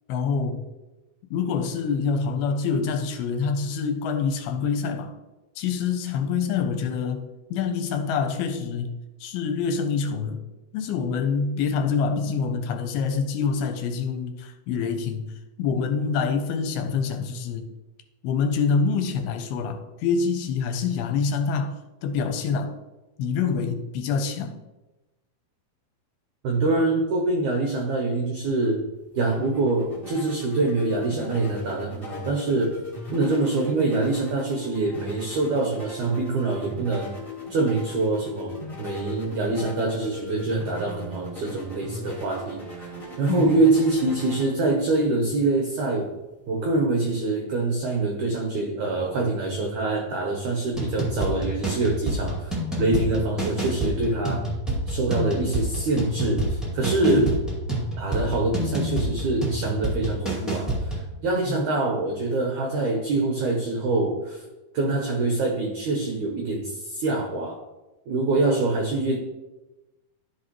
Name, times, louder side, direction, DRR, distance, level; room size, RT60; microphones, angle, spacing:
voice 1, 0.1-0.6 1.3-5.1 5.6-7.2 7.5-10.4 10.7-15.3 15.6-17.7 18.2-21.7 22.0-22.8 23.2-24.6 43.3-43.5 57.1-57.3 61.4-61.6, left 5 dB, 80° left, 6 dB, 2.5 m, -26 dB
voice 2, 26.4-28.8 29.1-32.8 33.1-37.1 37.5-42.9 43.2-46.1 46.5-52.5 52.8-54.4 54.9-57.3 58.0-64.4 64.7-67.6 68.1-69.2, right 2 dB, 85° right, 2 dB, 1.7 m, -25 dB
sound 1, 28.9-47.2, equal, 40° left, 0.7 m, -39 dB
sound 2, 50.7-61.1, right 1 dB, ahead, 0.3 m, -28 dB
12.5 x 5.0 x 3.0 m, 1.1 s
omnidirectional pair, 4.7 m